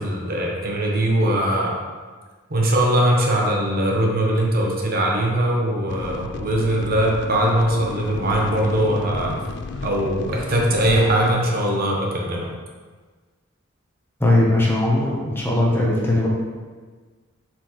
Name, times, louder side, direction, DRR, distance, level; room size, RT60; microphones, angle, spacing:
voice 1, 0.0-1.8 2.5-9.4 9.8-12.5, right 1 dB, 45° right, -1 dB, 1.0 m, -21 dB
sound 1, 5.9-11.4, left 4 dB, 55° left, 0.3 m, -33 dB
voice 2, 14.2-16.3, left 1 dB, 10° left, -4 dB, 0.9 m, -19 dB
7.4 x 4.5 x 3.1 m, 1.4 s
head